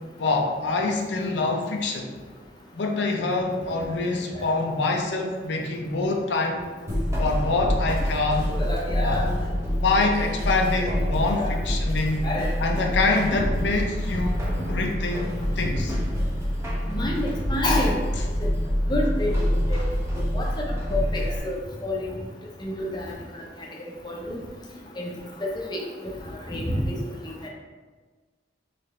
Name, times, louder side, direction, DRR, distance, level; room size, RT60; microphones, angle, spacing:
voice 1, 0.2-2.1 2.7-6.6 7.2-8.5 9.0-9.5 9.7-12.3 12.6-14.4 14.7-15.3 15.6-16.0, left 3 dB, 85° left, 2 dB, 0.6 m, -25 dB
sound 1, 6.9-21.4, equal, 15° right, 0.8 m, -26 dB
voice 2, 8.5-9.3 11.3-11.5 12.2-12.5 16.9-17.9 18.9-19.3 19.7-19.8 20.3-20.4 20.9-21.6 21.8-22.1 22.6-23.1 24.0-24.4 25.0-25.1 25.4-25.8 26.5-26.9, left 1 dB, 25° left, -2 dB, 0.7 m, -28 dB
4.1 x 3.2 x 3.2 m, 1.4 s
head